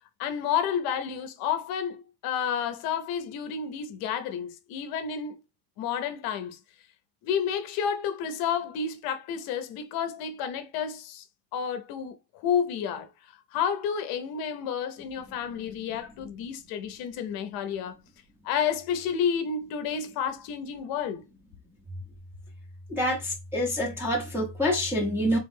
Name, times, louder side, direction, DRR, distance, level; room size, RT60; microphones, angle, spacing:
voice 1, 0.2-5.4 5.8-6.6 7.2-11.3 11.5-18.0 18.4-21.2, left 7 dB, 50° left, 0.7 m, -30 dB
voice 2, 22.9-25.4, equal, 5° right, 0.6 m, -27 dB
3.5 x 3.0 x 3.6 m
cardioid pair, 170°, 46 cm